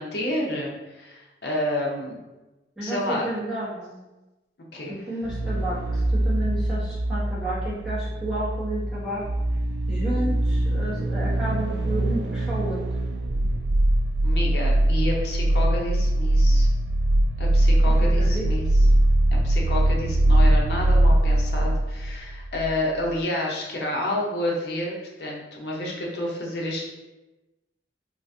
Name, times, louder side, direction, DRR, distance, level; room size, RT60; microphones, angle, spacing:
voice 1, 0.0-2.2 2.8-3.3 4.7-5.0 14.2-16.7 17.4-18.7 19.4-26.9, left 1 dB, 65° left, -2 dB, 0.7 m, -29 dB
voice 2, 2.8-4.0 4.8-9.2 9.9-12.8 17.9-18.5, right 1 dB, 5° right, -10 dB, 1.0 m, -32 dB
sound 1, 5.2-22.8 23.0-23.1, right 1 dB, 70° right, 0.3 m, -22 dB
3.8 x 2.4 x 2.6 m, 1.1 s
head